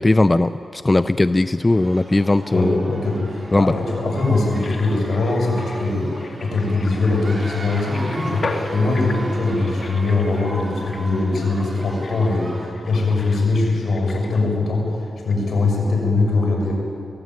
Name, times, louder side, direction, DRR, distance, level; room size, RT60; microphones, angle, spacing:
voice 1, 0.0-2.8 3.5-3.7, left 2 dB, 25° left, 12 dB, 0.5 m, -18 dB
sound 1, 1.7-12.7, right 1 dB, 25° right, 5.0 m, -37 dB
voice 2, 2.5-12.5 12.8-16.7, left 3 dB, 75° left, 0 dB, 6.4 m, -21 dB
sound 2, 4.4-15.0 15.3-15.4, left 3 dB, 55° left, 2.4 m, -37 dB
22.5 x 16.5 x 9.5 m, 2.7 s
cardioid pair, 75°, 0 cm